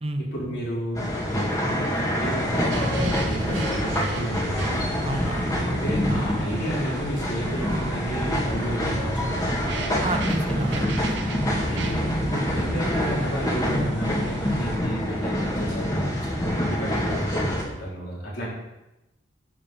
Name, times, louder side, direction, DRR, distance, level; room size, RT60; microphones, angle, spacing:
voice 1, 0.2-4.9 5.7-9.8 11.7-18.5, equal, 65° left, -5 dB, 4.9 m, -32 dB
sound 1, 0.9-17.6, equal, 20° left, 2.2 m, -26 dB
sound 2, 2.7-14.8, right 2 dB, 75° right, 1.3 m, -35 dB
voice 2, 5.0-5.5 10.0-11.1, right 2 dB, 30° right, 6 dB, 0.9 m, -30 dB
11.5 x 5.6 x 7.0 m, 0.95 s
head